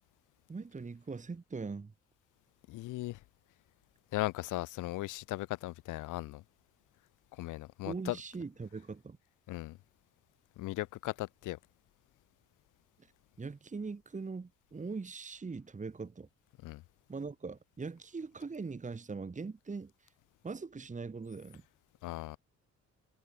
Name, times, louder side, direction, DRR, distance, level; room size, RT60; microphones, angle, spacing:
voice 1, 0.5-1.9 7.9-9.2 13.4-16.3 17.1-20.1 20.4-21.6, right 4 dB, 25° right, 1.9 m, -41 dB
voice 2, 2.7-3.2 4.1-6.4 7.4-8.2 9.5-9.8 10.6-11.6 16.6-16.8 22.0-22.4, left 18 dB, 85° left, 0.8 m, -37 dB
cardioid pair, 90°, 30 cm